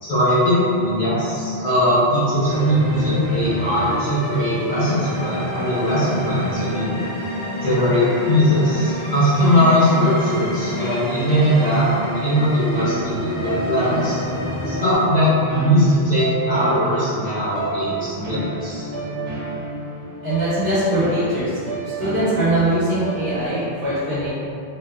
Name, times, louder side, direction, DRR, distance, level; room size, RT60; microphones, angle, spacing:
voice 1, 0.0-7.0 7.6-14.2 14.6-18.9, equal, 85° left, -12 dB, 1.4 m, -20 dB
sound 1, 2.4-15.0, equal, 25° right, 1.1 m, -29 dB
sound 2, 12.7-23.7, right 2 dB, 80° right, 0.9 m, -30 dB
voice 2, 20.2-21.5 22.0-24.3, right 1 dB, 45° right, -10 dB, 0.8 m, -21 dB
2.9 x 2.2 x 2.2 m, 2.5 s
omnidirectional pair, 1.1 m